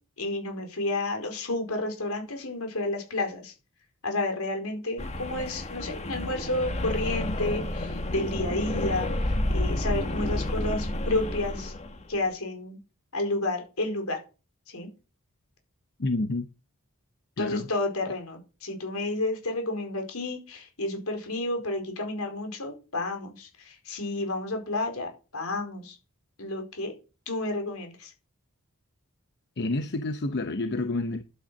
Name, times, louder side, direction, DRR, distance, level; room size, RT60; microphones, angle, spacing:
voice 1, 0.2-3.5 4.0-11.7 12.1-12.8 13.1-14.2 14.7-14.9 17.4-26.0 26.4-26.9 27.3-28.1, left 2 dB, 80° left, 4.8 m, -31 dB
sound 1, 5.0-12.2, left 1 dB, 30° left, 1.6 m, -30 dB
voice 2, 16.0-16.5 17.4-17.7 29.6-31.2, left 2 dB, 55° left, 0.9 m, -29 dB
11.5 x 8.8 x 6.3 m
head